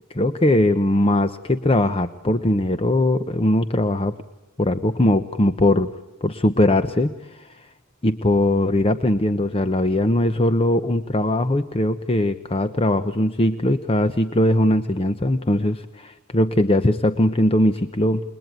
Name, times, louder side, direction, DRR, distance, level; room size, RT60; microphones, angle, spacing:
voice 1, 0.1-4.1 4.6-5.9 6.2-7.7 8.0-18.2, left 1 dB, 25° left, 10 dB, 0.8 m, -20 dB
29.5 x 21.5 x 9.2 m, 1.1 s
head